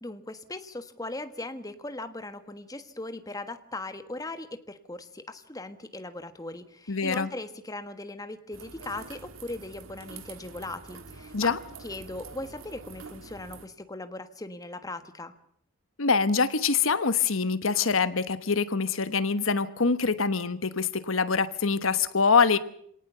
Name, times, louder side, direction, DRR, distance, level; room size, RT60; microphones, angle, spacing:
voice 1, 0.0-11.5 11.8-15.3, left 2 dB, 15° left, 9 dB, 1.4 m, -39 dB
voice 2, 6.9-7.3 11.3-11.6 16.0-22.6, left 5 dB, 75° left, 13 dB, 1.2 m, -24 dB
sound 1, 8.5-13.7, right 4 dB, 85° right, 1.8 m, -46 dB
27.0 x 18.0 x 6.8 m, 0.67 s
head